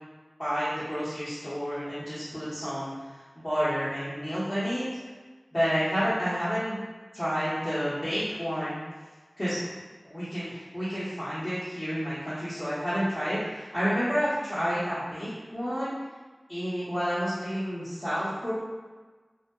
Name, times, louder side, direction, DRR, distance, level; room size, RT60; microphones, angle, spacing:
voice 1, 0.4-4.8 5.5-6.8 7.1-8.8 9.4-9.7 10.0-15.9 16.5-18.5, equal, 35° left, -15 dB, 0.9 m, -30 dB
2.6 x 2.1 x 2.2 m, 1.4 s
wide cardioid pair, 50°, 0 cm